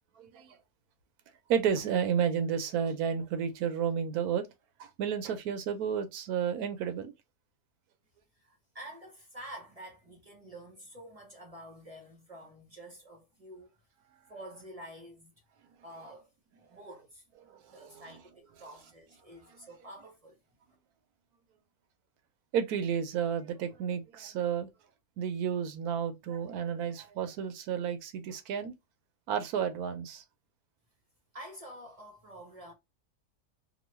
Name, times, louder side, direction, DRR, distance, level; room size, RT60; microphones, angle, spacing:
voice 1, 0.2-0.6 1.5-4.5 4.8-7.1 17.7-18.0 19.5-19.6 22.5-24.7 25.2-28.7 29.3-30.2, right 8 dB, 80° right, 1.1 m, -31 dB
voice 2, 8.4-13.7 14.3-15.3 15.8-16.3 16.7-17.2 17.7-20.4 31.3-32.7, right 1 dB, 35° right, 0.6 m, -48 dB
3.0 x 2.2 x 3.0 m
omnidirectional pair, 1.6 m